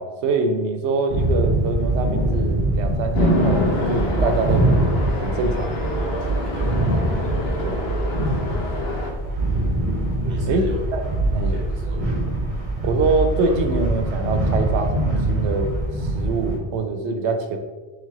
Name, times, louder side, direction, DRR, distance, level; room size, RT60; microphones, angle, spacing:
voice 1, 0.0-5.7 7.6-7.9 10.5-10.6 10.9-11.0 11.3-11.6 12.8-17.6, right 3 dB, 90° right, 6 dB, 0.9 m, -24 dB
sound 1, 1.1-16.6, right 1 dB, 35° right, 0.7 m, -23 dB
Chatter / Traffic noise roadway noise / Train, 3.1-9.1, left 1 dB, 65° left, 1.0 m, -26 dB
voice 2, 6.0-6.8 10.2-10.8 11.3-12.1, right 1 dB, 60° right, -1 dB, 1.2 m, -36 dB
3.4 x 3.2 x 3.7 m, 1.3 s
omnidirectional pair, 1.1 m